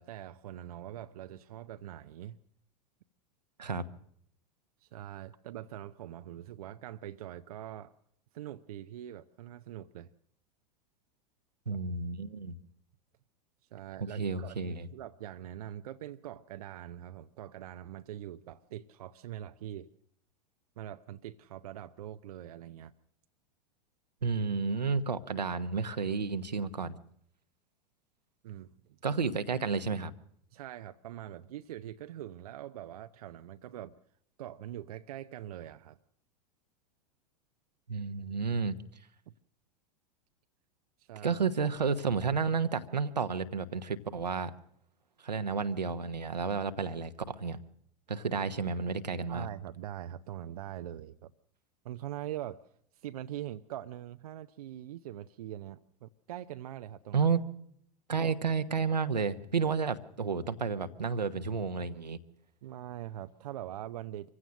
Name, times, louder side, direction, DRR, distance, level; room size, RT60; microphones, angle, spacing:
voice 1, 0.0-2.4 4.8-7.9 8.3-10.1 11.7-11.8 13.7-19.9 20.8-22.9 28.4-29.0 30.5-33.9 34.4-36.0 39.3-39.4 41.0-41.4 49.3-51.3 51.8-52.7 52.9-57.3 58.2-58.3 62.6-64.3, right 12 dB, 65° right, 0.7 m, -43 dB
voice 2, 11.7-12.6 14.0-14.9 24.2-27.0 29.0-30.1 37.9-38.8 41.2-44.5 45.2-47.6 48.1-49.5 57.1-57.4 58.1-62.2, right 5 dB, 85° right, 1.1 m, -31 dB
25.0 x 16.0 x 6.4 m
figure-of-eight pair, 90°, 21 cm